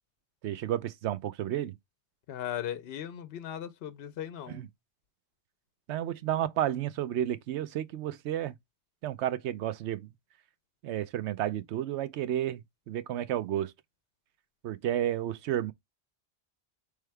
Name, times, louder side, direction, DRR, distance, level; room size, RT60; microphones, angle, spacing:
voice 1, 0.4-1.7 4.5-4.7 5.9-8.6 9.0-10.1 10.8-13.7 14.6-15.7, right 11 dB, 85° right, 0.9 m, -31 dB
voice 2, 2.3-4.7, left 10 dB, 70° left, 0.8 m, -38 dB
4.6 x 3.4 x 3.2 m
omnidirectional pair, 1.1 m